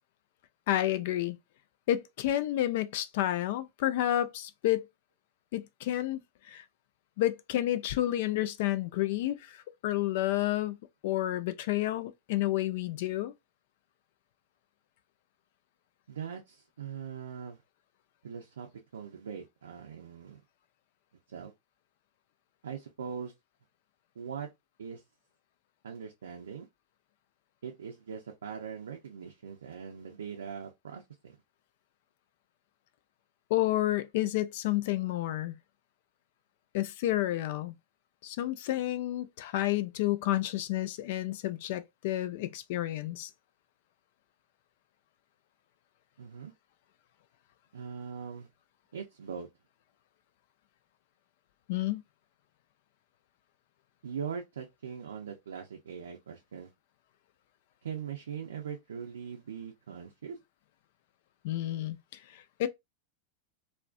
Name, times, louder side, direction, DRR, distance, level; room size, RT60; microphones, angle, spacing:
voice 1, 0.7-1.4 1.9-4.8 5.5-6.2 6.5-6.6 7.2-9.6 9.8-10.8 11.0-13.3 33.5-35.6 36.7-37.7 38.2-43.3 51.7-52.0 61.4-62.0 62.3-62.7, left 14 dB, 60° left, 0.3 m, -30 dB
voice 2, 16.1-17.6 18.2-20.4 21.3-21.5 22.6-23.3 24.2-24.5 24.8-25.0 25.8-26.7 27.6-31.4 46.2-46.5 47.7-48.5 48.9-49.5 54.0-56.7 57.8-60.4, right 7 dB, 80° right, 0.4 m, -41 dB
2.4 x 2.1 x 2.4 m
hypercardioid pair, 100°, 0 cm